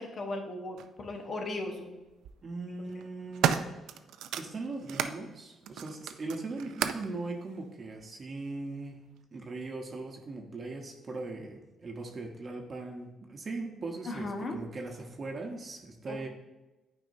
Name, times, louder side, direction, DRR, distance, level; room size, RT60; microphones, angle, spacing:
voice 1, 0.0-2.0 14.1-14.6, left 2 dB, 45° left, 3 dB, 1.1 m, -36 dB
sound 1, 0.8-0.9 2.0-2.3 2.9-5.2 5.6-7.1 8.0-8.1, right 9 dB, 85° right, 0.3 m, -33 dB
voice 2, 2.4-3.7 4.4-9.0 9.3-16.3, right 3 dB, 40° right, 1 dB, 0.9 m, -39 dB
9.3 x 4.7 x 2.7 m, 1.1 s
cardioid pair, 90°, 0 cm